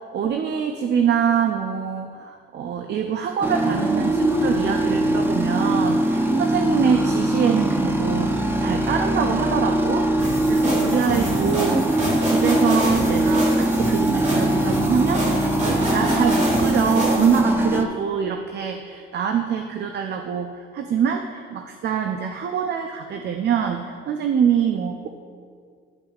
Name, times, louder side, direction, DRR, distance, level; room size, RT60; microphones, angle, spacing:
voice 1, 0.1-25.1, right 7 dB, 60° right, 4 dB, 0.5 m, -25 dB
sound 1, 3.4-17.8, right 1 dB, 10° right, 0.6 m, -22 dB
sound 2, 10.2-17.4, right 1 dB, 35° right, 1.7 m, -28 dB
12.5 x 5.7 x 2.4 m, 2.2 s
cardioid pair, 90°, 20 cm